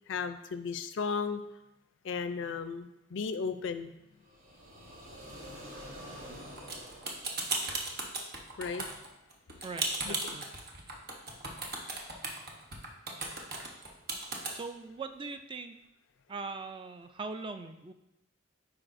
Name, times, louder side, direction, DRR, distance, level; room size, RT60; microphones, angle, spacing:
voice 1, 0.1-1.4 2.0-3.9 8.6-8.8 10.1-10.3, left 5 dB, 65° left, 10 dB, 0.4 m, -35 dB
sound 1, 4.2-8.2, equal, 85° right, 1.8 m, -48 dB
sound 2, 6.6-14.5, right 3 dB, 50° right, 1.0 m, -35 dB
voice 2, 9.6-10.5 14.5-15.7 16.3-17.9, right 4 dB, 25° right, 8 dB, 0.3 m, -41 dB
9.8 x 4.8 x 2.6 m, 0.90 s
head